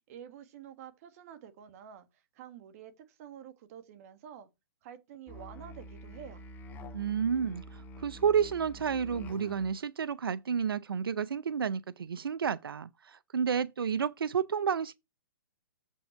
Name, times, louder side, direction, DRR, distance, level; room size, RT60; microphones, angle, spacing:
voice 1, 0.1-4.5 4.8-6.5, right 9 dB, 40° right, 1.6 m, -49 dB
Musical instrument, 5.3-9.8, equal, 15° left, 1.1 m, -47 dB
voice 2, 6.9-14.9, right 7 dB, 85° right, 0.5 m, -31 dB
7.4 x 5.3 x 4.5 m
hypercardioid pair, 140°, 12 cm